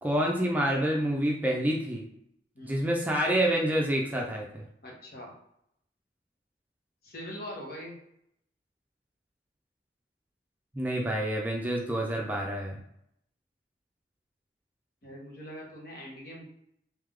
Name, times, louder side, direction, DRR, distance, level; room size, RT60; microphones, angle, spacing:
voice 1, 0.0-2.1 2.6-4.6 10.7-12.7, right 1 dB, 10° right, -1 dB, 0.5 m, -28 dB
voice 2, 4.8-5.3 7.0-8.0 15.0-16.4, equal, 55° left, -2 dB, 1.4 m, -42 dB
3.4 x 3.2 x 3.6 m, 0.75 s
head